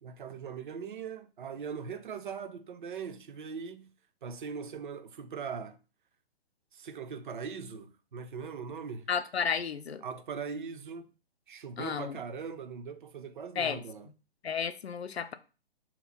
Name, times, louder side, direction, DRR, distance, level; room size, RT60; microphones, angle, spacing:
voice 1, 0.0-3.9 4.2-5.8 6.7-9.1 10.0-11.1 11.5-14.1, right 6 dB, 55° right, 0.5 m, -40 dB
voice 2, 9.1-10.0 11.8-12.2 13.6-13.8 14.4-15.3, left 7 dB, 85° left, 0.5 m, -32 dB
2.8 x 2.5 x 3.9 m
figure-of-eight pair, 130°, 31 cm